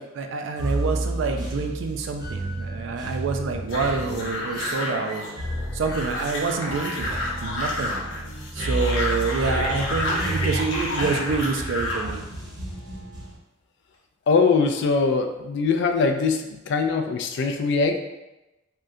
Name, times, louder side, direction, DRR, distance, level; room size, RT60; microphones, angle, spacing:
voice 1, 0.0-5.2 5.7-8.0 8.5-12.3, right 4 dB, 70° right, 5 dB, 0.3 m, -27 dB
sound 1, 0.6-13.3, right 1 dB, 20° right, 0.7 m, -31 dB
sound 2, 3.7-12.1, left 1 dB, 80° left, 0.7 m, -30 dB
voice 2, 14.3-18.0, left 4 dB, 60° left, 5 dB, 0.3 m, -22 dB
3.6 x 2.1 x 2.6 m, 1.0 s
head